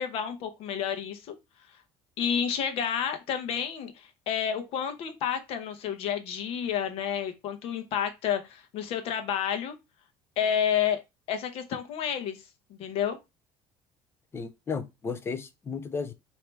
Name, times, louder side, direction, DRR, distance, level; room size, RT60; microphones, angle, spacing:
voice 1, 0.0-1.4 2.2-9.7 10.4-11.0 11.3-12.4 12.7-13.2, left 8 dB, 60° left, 0.9 m, -30 dB
voice 2, 14.3-16.1, left 5 dB, 20° left, 0.5 m, -34 dB
3.3 x 2.8 x 4.5 m
cardioid pair, 140°, 11 cm